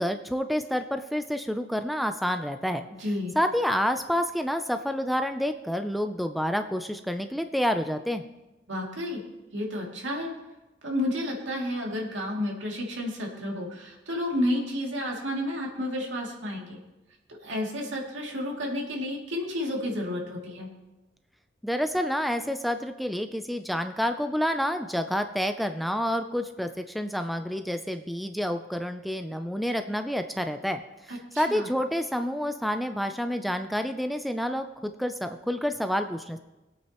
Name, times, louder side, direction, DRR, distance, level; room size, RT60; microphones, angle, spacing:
voice 1, 0.0-2.9 3.4-8.2 21.6-36.4, equal, ahead, 7 dB, 0.4 m, -29 dB
voice 2, 2.9-3.3 8.7-9.2 9.5-10.3 10.8-16.8 17.4-20.7 31.1-31.7, left 1 dB, 90° right, -2 dB, 2.5 m, -31 dB
21.0 x 8.6 x 3.0 m, 1.0 s
head